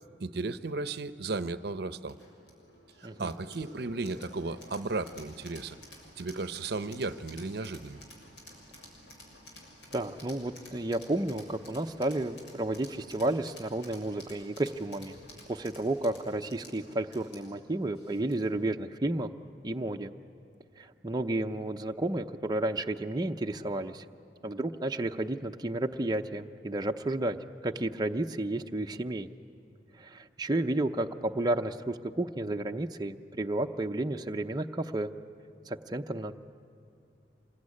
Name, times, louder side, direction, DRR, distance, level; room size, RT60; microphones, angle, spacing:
voice 1, 0.2-2.2 3.0-5.8 6.2-8.0, right 3 dB, 65° right, 12 dB, 0.8 m, -35 dB
sound 1, 2.1-18.6, left 1 dB, 85° left, 6.8 m, -52 dB
voice 2, 9.9-15.2 15.5-19.3 19.6-20.1 20.8-24.1 24.4-27.4 27.6-29.3 30.0-35.1 35.7-36.3, right 1 dB, 25° right, 4 dB, 0.7 m, -32 dB
27.0 x 21.5 x 9.8 m, 2.7 s
head